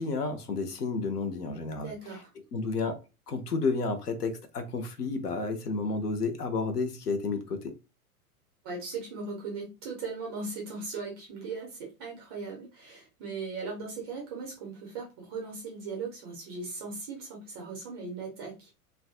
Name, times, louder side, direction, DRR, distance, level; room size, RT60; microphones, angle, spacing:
voice 1, 0.0-1.9 2.5-3.0 3.3-7.7, left 4 dB, 85° left, 0.6 m, -31 dB
voice 2, 1.8-2.3 8.6-18.7, right 4 dB, 20° right, 0.3 m, -38 dB
2.4 x 2.2 x 2.3 m
figure-of-eight pair, 95°, 45 cm